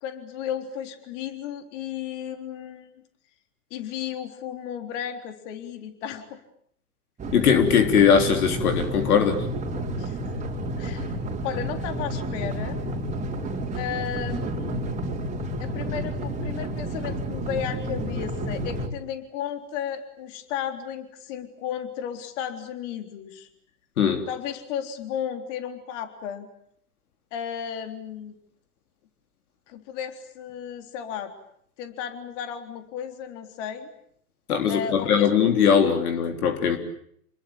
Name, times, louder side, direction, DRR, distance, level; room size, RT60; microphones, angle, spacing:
voice 1, 0.0-2.9 3.7-6.4 10.0-10.2 10.8-11.2 11.4-12.8 13.7-15.0 15.6-23.5 24.3-26.5 27.3-28.4 29.7-31.3 31.8-33.9 34.7-35.3, left 9 dB, 50° left, 7 dB, 3.8 m, -34 dB
sound 1, 7.2-18.9, right 1 dB, 15° right, 4.0 m, -30 dB
voice 2, 7.3-9.5 24.0-24.2 34.5-36.8, left 7 dB, 70° left, 7 dB, 3.6 m, -20 dB
29.0 x 21.5 x 8.8 m, 0.68 s
hypercardioid pair, 110°, 46 cm